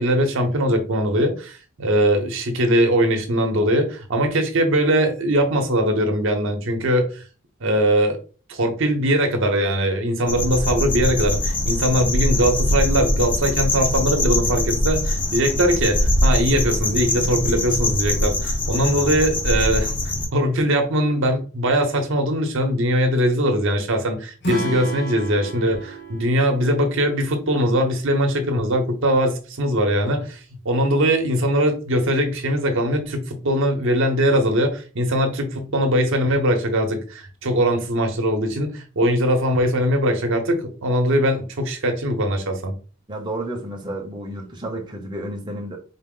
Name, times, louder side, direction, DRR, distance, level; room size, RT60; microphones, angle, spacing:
voice 1, 0.0-7.2 7.6-8.2 8.5-42.7, equal, 65° right, 0.8 m, -21 dB
sound 1, 10.3-20.3, left 1 dB, 25° left, 0.6 m, -22 dB
Acoustic guitar / Strum, 24.4-27.7, right 2 dB, 55° left, 1.0 m, -32 dB
voice 2, 43.1-45.8, right 1 dB, 20° right, 0.7 m, -31 dB
4.0 x 2.0 x 3.6 m
head